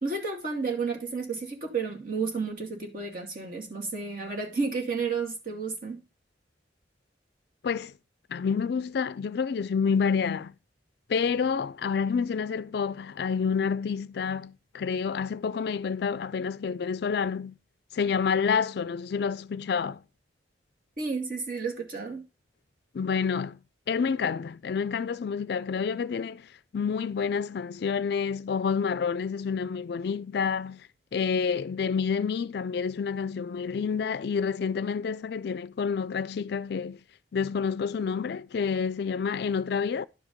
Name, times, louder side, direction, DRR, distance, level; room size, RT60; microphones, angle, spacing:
voice 1, 0.0-6.0 21.0-22.2, right 4 dB, 50° right, 2.3 m, -32 dB
voice 2, 7.6-7.9 8.3-10.5 11.1-17.6 17.9-20.0 22.9-23.6 23.9-37.0 37.3-40.1, left 6 dB, 60° left, 0.4 m, -28 dB
11.0 x 5.0 x 5.2 m
head